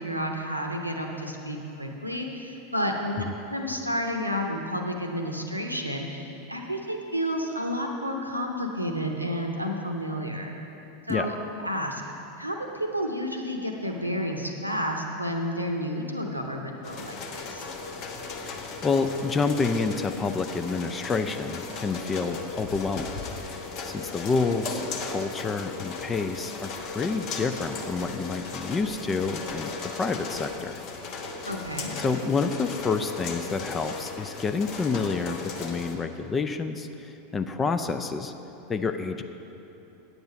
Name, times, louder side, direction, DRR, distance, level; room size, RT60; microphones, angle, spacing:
voice 1, 0.0-10.5 11.1-11.3 11.6-12.0 12.4-17.7 31.5-31.9, equal, 90° right, 2 dB, 0.8 m, -31 dB
sound 1, 16.8-35.9, left 4 dB, 40° left, 1.0 m, -37 dB
voice 2, 18.4-30.8 31.4-31.5 32.0-38.3 38.7-39.2, left 4 dB, 20° left, 8 dB, 0.5 m, -29 dB
9.4 x 8.0 x 6.2 m, 2.9 s
figure-of-eight pair, 85°, 0 cm